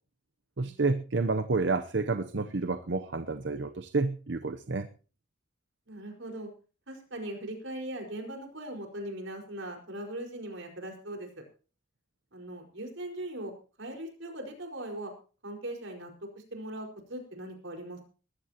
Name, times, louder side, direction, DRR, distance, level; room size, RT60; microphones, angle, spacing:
voice 1, 0.6-4.9, right 3 dB, 65° right, 9 dB, 0.8 m, -29 dB
voice 2, 5.9-6.5 6.9-11.4 12.3-13.5 13.8-15.1 15.4-18.0, right 1 dB, 85° right, 3 dB, 4.9 m, -40 dB
21.0 x 14.5 x 2.9 m, 0.37 s
head